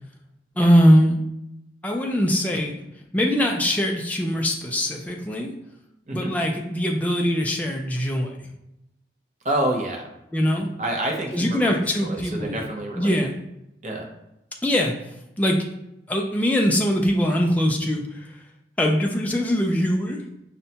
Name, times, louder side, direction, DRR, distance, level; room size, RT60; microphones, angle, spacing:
voice 1, 0.6-1.2 1.8-2.7 3.1-5.5 6.1-8.3 10.3-10.7 11.3-12.6 13.0-13.3 14.6-14.9 15.4-15.6 16.1-18.3 18.8-20.2, equal, 10° left, 0 dB, 0.3 m, -21 dB
voice 2, 9.4-10.1 10.8-13.3 13.8-14.1, right 1 dB, 40° right, 1 dB, 0.6 m, -28 dB
5.3 x 2.1 x 2.8 m, 0.85 s
head